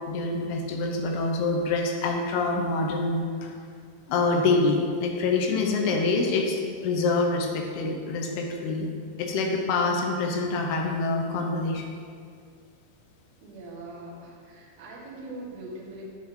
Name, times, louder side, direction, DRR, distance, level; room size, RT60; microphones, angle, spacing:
voice 1, 0.1-3.5 4.1-8.9 9.2-11.8, left 3 dB, 80° left, 2 dB, 2.7 m, -26 dB
voice 2, 13.4-16.1, right 1 dB, 55° right, -3 dB, 2.0 m, -41 dB
7.4 x 6.3 x 5.3 m, 2.2 s
omnidirectional pair, 4.7 m